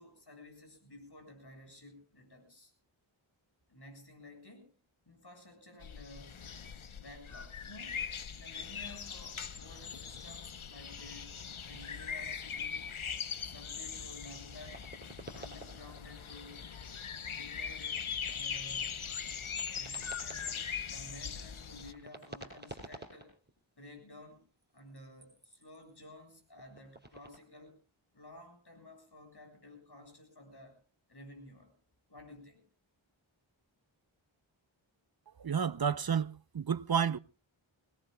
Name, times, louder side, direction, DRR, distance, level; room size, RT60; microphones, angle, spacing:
voice 1, 0.0-2.7 3.7-4.7 5.1-6.5 6.9-8.1 8.3-11.4 11.6-12.9 13.4-14.9 15.3-16.6 17.3-19.1 19.7-23.3 23.8-24.4 24.7-27.8 28.1-30.8 31.1-31.8 32.1-32.6, left 1 dB, 55° left, 7.4 m, -53 dB
sound 1, 5.8-21.9, left 6 dB, 85° left, 1.0 m, -41 dB
sound 2, 13.3-13.4 13.8-16.1 16.6-16.7 17.7-18.3 19.1-20.7 21.5-23.5 24.6-26.0 26.5-27.4, right 1 dB, 20° right, 6.1 m, -51 dB
voice 2, 35.4-37.2, right 7 dB, 50° right, 0.6 m, -31 dB
24.0 x 20.0 x 2.3 m
wide cardioid pair, 55°, 47 cm